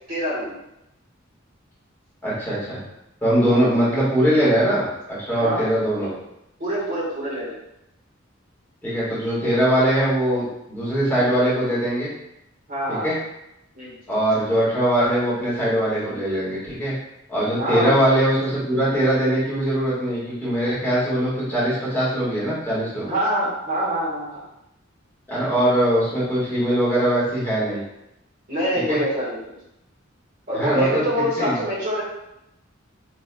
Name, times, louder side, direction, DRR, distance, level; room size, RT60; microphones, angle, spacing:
voice 1, 0.1-0.6 3.4-3.6 5.3-5.6 6.0-6.1 6.6-7.6 12.7-13.1 13.7-13.9 17.5-18.0 23.0-24.4 28.5-29.5 30.5-32.0, equal, 45° right, -7 dB, 1.4 m, -25 dB
voice 2, 2.2-2.8 3.2-6.1 8.8-12.1 12.9-13.1 14.1-16.9 17.3-23.1 25.3-27.8 28.9-29.0 30.5-31.0 31.4-31.6, right 1 dB, 10° left, -10 dB, 1.5 m, -21 dB
4.4 x 3.4 x 2.2 m, 0.85 s
head